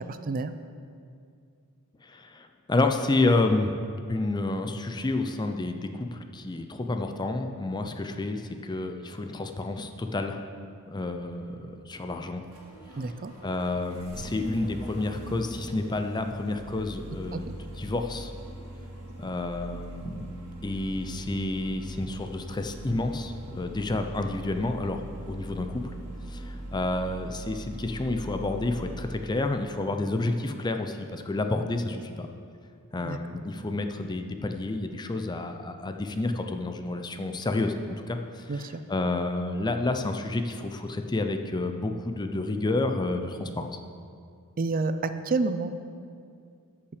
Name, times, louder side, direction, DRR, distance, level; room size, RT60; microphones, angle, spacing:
voice 1, 0.1-0.5 13.0-13.3 17.3-17.4 33.0-33.2 38.5-38.8 44.6-45.7, right 3 dB, 40° right, 10 dB, 0.5 m, -29 dB
voice 2, 2.0-3.7 4.1-10.4 10.8-11.6 11.9-12.4 13.4-17.5 17.8-18.3 19.2-20.3 20.6-25.8 26.3-32.3 32.9-43.8, left 2 dB, 20° left, 6 dB, 0.5 m, -30 dB
Engine starting, 10.9-29.2, right 1 dB, 70° right, 2.2 m, -41 dB
13.0 x 5.7 x 4.9 m, 2.3 s
head